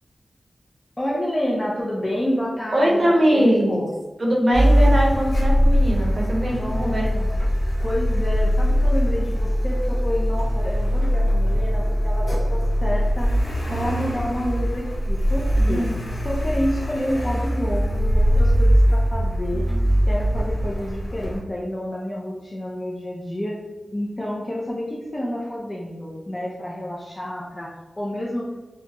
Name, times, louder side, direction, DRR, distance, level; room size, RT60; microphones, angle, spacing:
voice 1, 1.0-3.9 6.6-7.3 7.8-13.4 13.7-15.8 16.2-19.6 20.1-23.6 23.9-28.5, equal, 25° left, -4 dB, 0.4 m, -29 dB
voice 2, 2.7-3.8 4.2-7.1 15.5-15.9 19.7-20.0, equal, 45° right, -2 dB, 0.8 m, -21 dB
Car, 4.5-21.4, equal, 65° left, 1.0 m, -21 dB
2.8 x 2.2 x 2.8 m, 1.2 s
wide cardioid pair, 80°, 0 cm